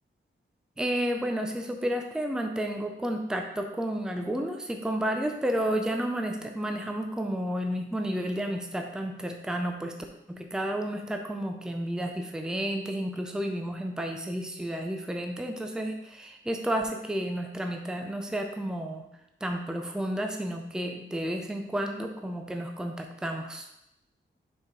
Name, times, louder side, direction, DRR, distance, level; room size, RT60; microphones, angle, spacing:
voice 1, 0.8-9.9 10.3-19.0 19.4-23.7, right 1 dB, 5° right, 4 dB, 0.5 m, -31 dB
5.9 x 4.5 x 3.8 m, 0.83 s
wide cardioid pair, 135°, 20 cm